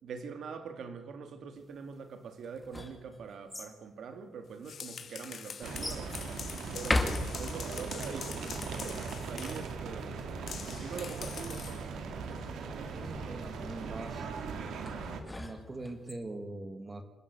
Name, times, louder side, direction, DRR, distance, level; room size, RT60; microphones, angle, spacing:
voice 1, 0.0-6.2 6.7-10.2 10.7-11.7, right 5 dB, 60° right, 8 dB, 2.4 m, -44 dB
sound 1, 2.4-3.7 4.6-4.7 5.8-6.1 6.7-7.8 14.9-16.1, left 2 dB, 10° left, 2.1 m, -35 dB
sound 2, 4.5-9.7 10.5-11.9, left 7 dB, 50° left, 2.1 m, -44 dB
sound 3, 5.6-15.2, right 4 dB, 85° right, 2.7 m, -39 dB
voice 2, 12.9-14.3 15.4-17.0, right 2 dB, 20° right, 8 dB, 1.7 m, -42 dB
27.0 x 12.5 x 8.3 m, 1.1 s
wide cardioid pair, 170°, 0 cm